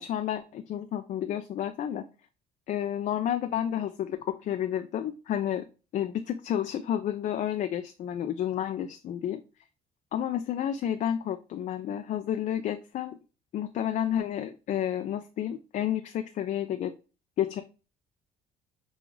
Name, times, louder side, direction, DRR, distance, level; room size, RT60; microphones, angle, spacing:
voice 1, 0.0-2.0 2.7-5.7 5.9-9.4 10.1-13.2 13.5-16.9 17.4-17.6, left 10 dB, 50° left, 8 dB, 0.4 m, -30 dB
5.3 x 2.4 x 3.0 m, 0.33 s
cardioid pair, 110°, 17 cm